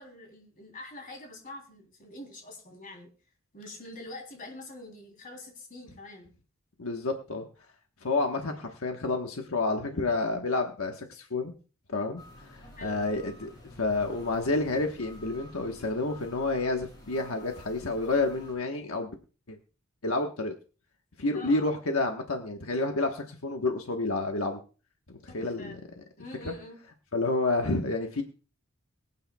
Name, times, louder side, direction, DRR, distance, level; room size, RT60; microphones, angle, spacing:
voice 1, 0.0-3.1 3.5-6.3 12.8-13.0 21.3-21.7 25.3-25.8 26.2-26.8, left 2 dB, 40° left, 2 dB, 3.3 m, -45 dB
voice 2, 6.8-7.4 8.0-11.5 11.9-13.5 13.8-19.1 19.5-19.6 20.0-20.5 21.2-24.6 25.2-25.8 26.4-26.5 27.1-28.2, left 2 dB, 75° left, 3 dB, 1.3 m, -29 dB
sound 1, 12.2-18.6, left 1 dB, 20° left, 6.3 m, -50 dB
22.5 x 9.0 x 2.3 m, 0.36 s
head